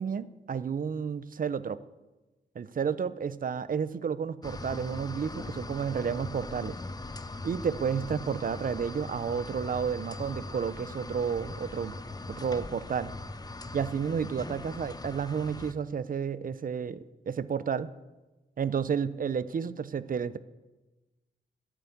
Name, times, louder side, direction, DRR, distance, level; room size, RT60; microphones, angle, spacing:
voice 1, 0.0-1.8 2.6-6.8 7.4-12.0 12.3-13.1 13.7-17.9 18.6-20.4, right 7 dB, 45° right, 16 dB, 0.6 m, -31 dB
sound 1, 4.4-15.7, left 2 dB, 20° left, 0.8 m, -40 dB
11.0 x 8.3 x 8.4 m, 1.1 s
wide cardioid pair, 100°, 19 cm